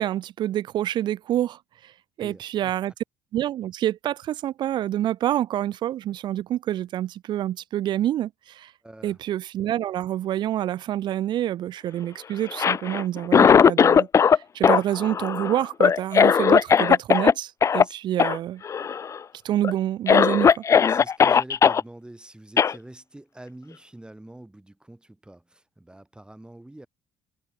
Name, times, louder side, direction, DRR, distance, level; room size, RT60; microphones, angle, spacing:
voice 1, 0.0-1.9 2.2-2.9 3.3-8.7 9.0-18.6 19.4-20.6, right 12 dB, 55° right, 0.4 m, -27 dB
voice 2, 2.2-2.8 8.8-9.2 17.8-18.0 20.8-26.9, right 1 dB, 10° right, 4.8 m, -45 dB
Cough, 12.4-14.4 14.6-17.3 17.6-17.8 18.2-18.4 18.6-19.2 19.6-19.7 20.1-21.8 22.6-22.7, left 7 dB, 35° left, 0.4 m, -18 dB
hypercardioid pair, 65°, 9 cm